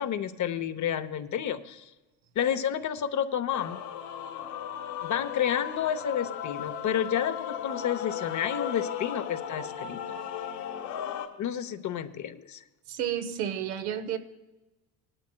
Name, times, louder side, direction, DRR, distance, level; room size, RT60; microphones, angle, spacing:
voice 1, 0.0-1.9 2.4-3.8 5.0-10.0 11.4-12.6, left 9 dB, 40° left, 10 dB, 0.9 m, -30 dB
Male singing / Female singing / Musical instrument, 3.5-11.3, left 9 dB, 65° left, 1.9 m, -36 dB
voice 2, 12.9-14.2, right 9 dB, 80° right, 8 dB, 1.1 m, -31 dB
19.0 x 12.0 x 2.3 m, 1.1 s
supercardioid pair, 90°, 43 cm